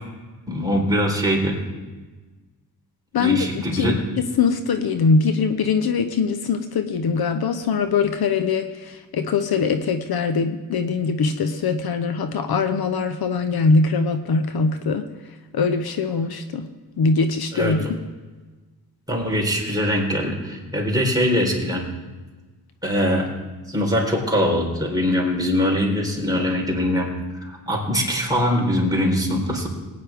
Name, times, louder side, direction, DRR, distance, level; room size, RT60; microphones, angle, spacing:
voice 1, 0.5-1.6 3.1-4.0 17.5-17.7 19.1-21.8 22.8-23.3 23.7-27.1 27.4-29.7, equal, 10° right, -2 dB, 3.9 m, -22 dB
voice 2, 3.1-15.1 15.5-16.7 17.0-17.9, left 4 dB, 65° left, 8 dB, 0.9 m, -22 dB
18.5 x 9.5 x 3.6 m, 1.3 s
cardioid pair, 75°, 39 cm